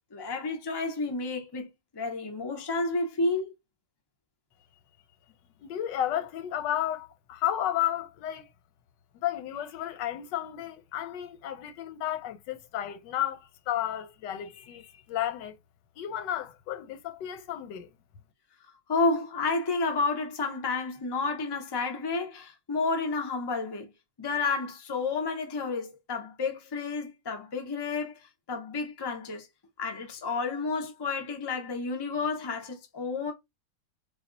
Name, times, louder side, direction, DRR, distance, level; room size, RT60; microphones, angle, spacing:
voice 1, 0.1-3.5 18.9-23.9 24.2-29.5 29.8-33.3, left 3 dB, 30° left, 0.4 m, -31 dB
voice 2, 5.6-8.5 9.2-15.6 16.0-17.9, left 11 dB, 90° left, 1.3 m, -32 dB
4.3 x 2.3 x 3.8 m
omnidirectional pair, 1.9 m